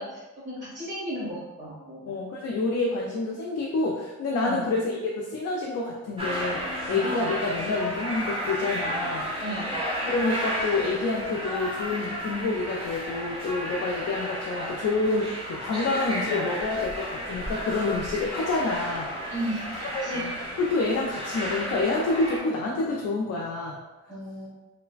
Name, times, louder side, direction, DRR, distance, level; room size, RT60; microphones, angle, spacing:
voice 1, 0.0-2.0 4.5-4.7 6.9-7.0 9.4-9.7 19.3-20.4 24.1-24.5, right 1 dB, 35° right, -9 dB, 1.5 m, -35 dB
voice 2, 2.0-9.3 10.0-19.3 19.9-20.3 20.6-23.8, left 3 dB, 55° left, -3 dB, 0.5 m, -28 dB
sound 1, 6.2-22.4, equal, 20° right, 0.9 m, -33 dB
3.1 x 2.1 x 2.4 m, 1.1 s
cardioid pair, 90°, 30 cm